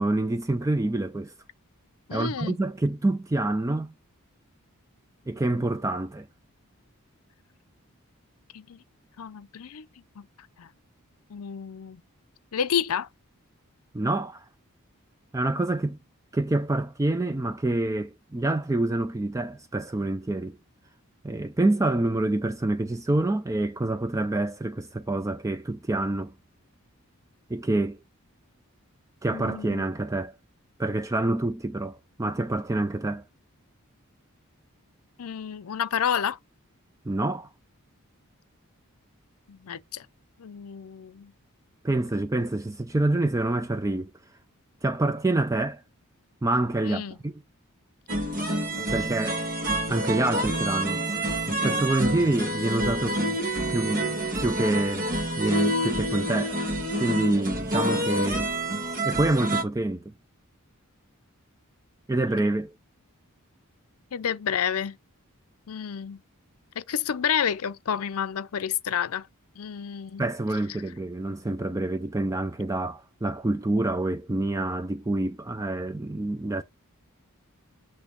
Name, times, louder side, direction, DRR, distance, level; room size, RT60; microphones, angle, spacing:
voice 1, 0.0-1.3 2.1-3.9 5.3-6.3 13.9-14.5 15.3-16.0 16.3-20.6 21.2-26.3 27.5-28.0 29.2-30.3 30.8-33.2 37.1-37.5 41.8-44.1 44.8-45.8 46.4-47.3 48.9-49.4 49.9-51.1 51.5-53.2 53.7-54.1 54.4-55.1 55.4-56.6 57.0-58.5 59.0-60.1 62.1-62.7 70.2-76.6, right 2 dB, 15° right, 0.4 m, -27 dB
voice 2, 2.1-2.6 8.5-8.8 9.2-9.9 10.2-10.3 10.6-10.7 11.3-12.0 12.5-13.1 29.3-29.9 35.2-36.4 39.5-40.1 40.4-41.3 46.8-47.2 64.1-65.0 65.7-66.2 66.8-69.3 69.6-70.3, left 8 dB, 75° left, 0.5 m, -30 dB
sound 1, 48.1-59.6, right 1 dB, 40° right, 1.6 m, -28 dB
8.3 x 3.2 x 5.2 m
head